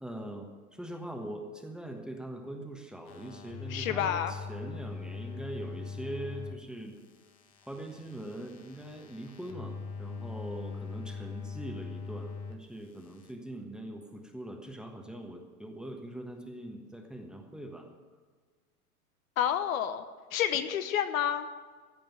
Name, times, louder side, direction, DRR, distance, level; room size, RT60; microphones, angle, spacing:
voice 1, 0.0-6.9 7.6-17.9, right 1 dB, ahead, 3 dB, 1.3 m, -42 dB
sound 1, 3.0-6.5 6.9-12.5 12.8-13.3, left 5 dB, 40° left, 1.5 m, -42 dB
voice 2, 3.7-4.3 19.4-20.0 20.3-21.5, left 9 dB, 60° left, 10 dB, 1.0 m, -29 dB
15.5 x 5.4 x 9.0 m, 1.5 s
hypercardioid pair, 100°, 46 cm